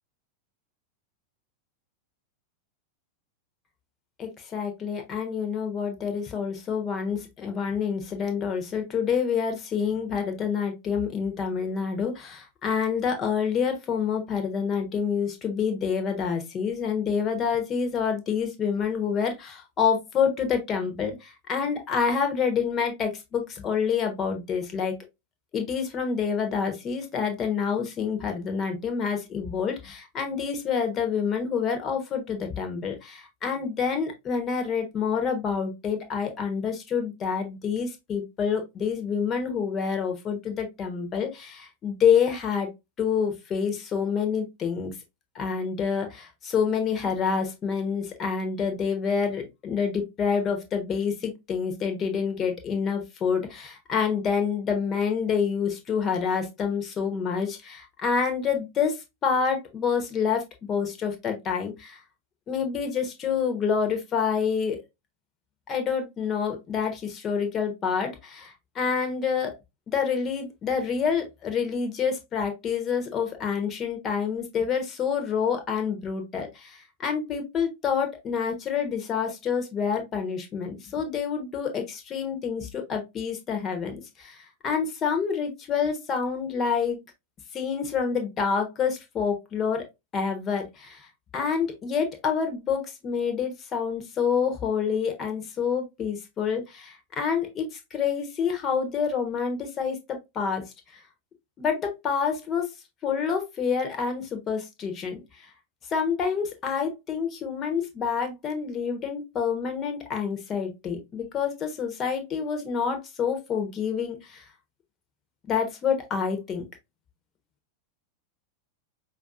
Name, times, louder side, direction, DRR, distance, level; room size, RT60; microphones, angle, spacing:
voice 1, 4.2-24.9 25.5-42.7 43.0-44.9 45.3-62.0 62.5-64.8 65.7-69.5 69.9-87.0 87.5-89.8 90.1-91.1 91.3-100.0 100.3-100.6 100.9-101.0 101.6-102.7 103.0-105.2 105.9-114.4 115.5-116.6, left 6 dB, 25° left, 1.0 m, -27 dB
5.0 x 2.7 x 2.5 m
figure-of-eight pair, 90°, 0 cm